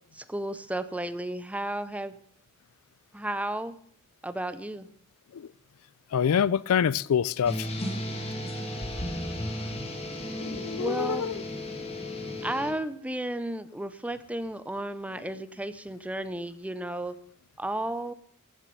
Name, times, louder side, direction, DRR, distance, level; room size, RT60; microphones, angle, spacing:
voice 1, 0.1-2.2 3.1-3.8 4.2-4.9 10.8-11.3 12.4-17.1 17.6-18.1, right 1 dB, 5° right, 0.5 m, -33 dB
voice 2, 6.1-7.7 10.4-11.4, left 8 dB, 80° left, 0.4 m, -26 dB
sound 1, 7.4-12.7, left 1 dB, 30° left, 1.7 m, -34 dB
14.5 x 7.5 x 5.5 m
head